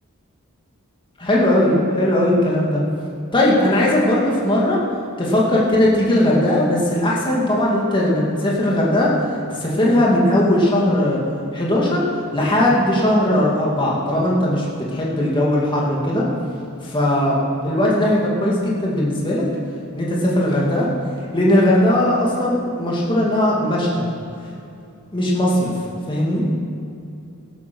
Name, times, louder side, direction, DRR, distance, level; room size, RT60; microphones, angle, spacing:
voice 1, 1.2-2.8 3.3-4.8 5.2-9.1 9.5-11.2 11.5-12.0 12.3-16.3 16.8-17.4 17.6-19.5 19.9-20.9 21.3-24.0 25.1-25.7 26.1-26.5, left 1 dB, 20° left, -4 dB, 2.3 m, -18 dB
16.0 x 9.4 x 6.2 m, 2.6 s
head